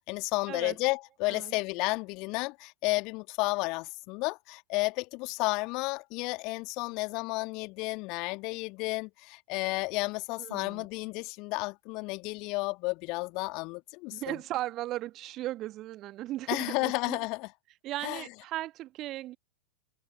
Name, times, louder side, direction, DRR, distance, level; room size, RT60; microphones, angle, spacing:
voice 1, 0.0-14.4 16.5-17.5 18.0-18.2, left 26 dB, 40° left, 1.9 m, -32 dB
voice 2, 10.4-10.9 14.1-17.2 17.8-19.4, right 15 dB, 35° right, 1.3 m, -37 dB
figure-of-eight pair, 90°, 0 cm